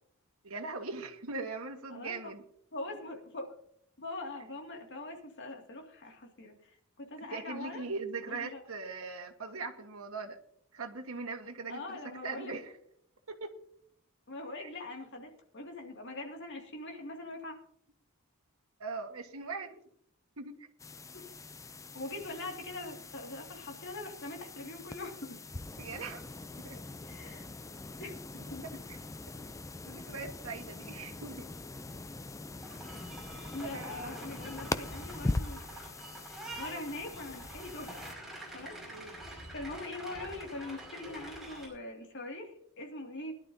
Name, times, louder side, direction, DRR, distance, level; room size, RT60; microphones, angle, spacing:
voice 1, 0.4-2.4 7.3-10.4 10.7-12.0 12.2-12.7 13.3-13.5 14.6-14.7 18.8-19.8 20.4-20.7 25.8-26.3 26.6-26.8 28.9-29.0 29.9-31.5 33.3-34.2 38.9-39.1, right 4 dB, 75° right, 4 dB, 1.4 m, -40 dB
voice 2, 1.9-2.3 2.7-3.5 4.0-6.5 7.0-7.8 8.2-8.6 11.7-12.6 14.3-17.5 21.1-21.3 21.9-25.4 27.1-27.5 28.0-28.7 33.5-35.6 36.6-37.9 38.5-38.8 39.5-43.3, left 2 dB, 55° left, 2 dB, 2.3 m, -42 dB
sound 1, 20.8-38.1, left 2 dB, 15° left, 0.4 m, -42 dB
sound 2, 32.6-41.7, right 1 dB, ahead, 5.6 m, -46 dB
21.0 x 11.5 x 2.8 m, 0.69 s
head